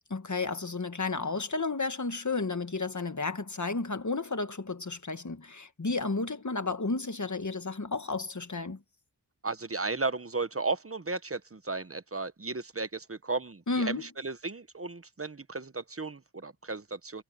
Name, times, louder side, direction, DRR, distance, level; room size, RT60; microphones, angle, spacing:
voice 1, 0.1-8.8 13.7-14.0, left 3 dB, 45° left, 1.5 m, -32 dB
voice 2, 9.4-17.2, right 3 dB, 35° right, 1.0 m, -35 dB
wide cardioid pair, 55°, 40 cm